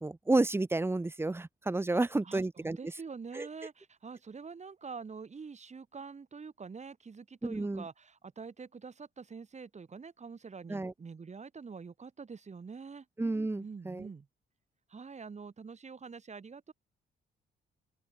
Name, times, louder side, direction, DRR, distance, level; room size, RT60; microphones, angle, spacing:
voice 1, 0.0-2.8 3.3-3.5 7.4-7.9 10.7-10.9 13.2-14.1, right 2 dB, 10° right, 0.8 m, -31 dB
voice 2, 1.9-13.1 13.6-14.3 14.9-16.7, right 5 dB, 35° right, 4.3 m, -46 dB
open air
cardioid pair, 90°, 20 cm